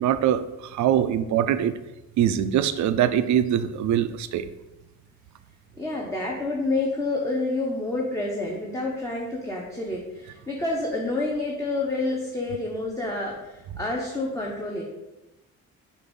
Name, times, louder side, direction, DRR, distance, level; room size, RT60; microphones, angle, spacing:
voice 1, 0.0-1.7 2.2-4.5, right 10 dB, 70° right, 12 dB, 0.5 m, -23 dB
voice 2, 5.8-14.8, left 2 dB, 10° left, -3 dB, 1.0 m, -28 dB
6.9 x 2.7 x 5.4 m, 1.0 s
cardioid pair, 90°, 30 cm